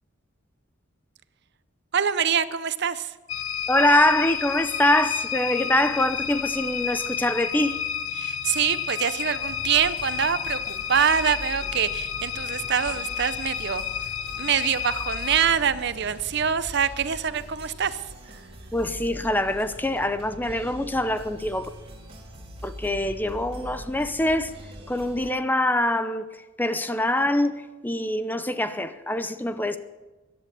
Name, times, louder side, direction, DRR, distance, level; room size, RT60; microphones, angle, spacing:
voice 1, 1.9-3.2 8.1-13.9 14.4-18.4, right 7 dB, 55° right, 0.7 m, -25 dB
sound 1, 3.3-15.5, left 8 dB, 80° left, 0.7 m, -31 dB
voice 2, 3.7-7.8 18.7-21.7 22.6-24.5 24.9-26.3 26.6-29.8, left 1 dB, 10° left, 0.7 m, -24 dB
sound 2, 9.4-25.3, equal, 30° right, 3.3 m, -42 dB
14.5 x 11.0 x 6.9 m
head